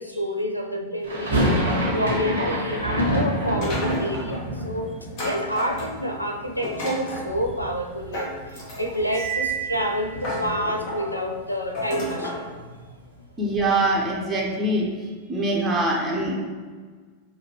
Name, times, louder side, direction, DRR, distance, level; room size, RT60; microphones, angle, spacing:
voice 1, 0.0-4.9 5.2-13.0, equal, 90° left, 3 dB, 0.4 m, -29 dB
sound 1, 1.0-7.0 7.2-8.1 8.4-8.5 8.7-10.9, equal, 75° right, 1.1 m, -27 dB
sound 2, 3.6-4.4 5.2-6.1 6.6-7.3 8.1-9.1 9.7-9.8 10.2-11.1 11.7-12.4, left 1 dB, 45° left, 1.3 m, -31 dB
Cymbal, 9.0-10.5, right 9 dB, 50° right, 0.6 m, -31 dB
voice 2, 13.4-14.9 15.3-16.3, right 1 dB, 20° right, -3 dB, 0.9 m, -23 dB
5.7 x 2.7 x 3.0 m, 1.5 s
figure-of-eight pair, 90°, 0 cm